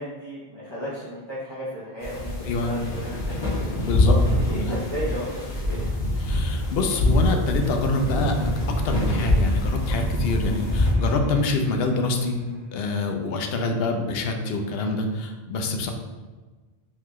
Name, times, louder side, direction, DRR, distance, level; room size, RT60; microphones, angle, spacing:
voice 1, 0.0-3.5 4.1-6.0 13.7-14.1, equal, 25° left, -11 dB, 1.0 m, -34 dB
sound 1, 2.0-10.9, left 1 dB, 55° left, 1.3 m, -24 dB
voice 2, 3.8-4.2 4.5-4.6 6.2-8.4 8.8-12.4 12.7-15.9, left 3 dB, 75° left, 4 dB, 0.8 m, -26 dB
sound 2, 8.5-13.2, equal, 80° right, 1.7 m, -43 dB
3.9 x 3.5 x 3.0 m, 1.3 s
omnidirectional pair, 1.0 m